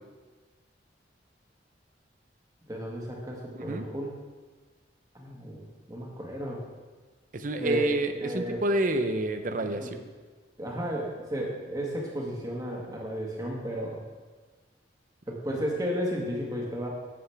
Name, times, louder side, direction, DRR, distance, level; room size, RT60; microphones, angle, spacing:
voice 1, 2.7-4.1 5.1-5.6 5.9-6.6 7.6-7.9 8.2-8.6 9.8-10.0 10.6-14.0 15.3-16.9, equal, 20° right, -2 dB, 1.5 m, -33 dB
voice 2, 7.3-9.9, right 2 dB, 45° right, 8 dB, 0.6 m, -28 dB
10.0 x 7.8 x 3.4 m, 1.3 s
head